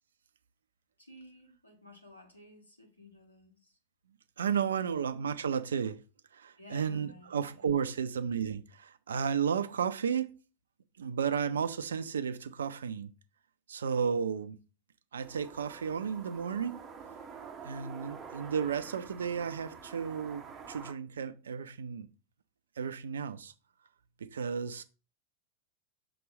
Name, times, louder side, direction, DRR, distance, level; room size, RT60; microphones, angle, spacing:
voice 1, 1.0-3.7 4.7-5.1 6.6-8.0, left 2 dB, 85° left, 1.7 m, -55 dB
voice 2, 4.4-6.0 6.3-10.3 11.0-13.1 13.7-14.6 15.1-16.8 17.6-22.1 22.8-23.5 24.2-24.8, right 7 dB, 65° right, 0.5 m, -33 dB
sound 1, 15.2-20.9, right 6 dB, 25° right, 0.8 m, -47 dB
5.9 x 3.1 x 5.1 m
figure-of-eight pair, 90°, 0 cm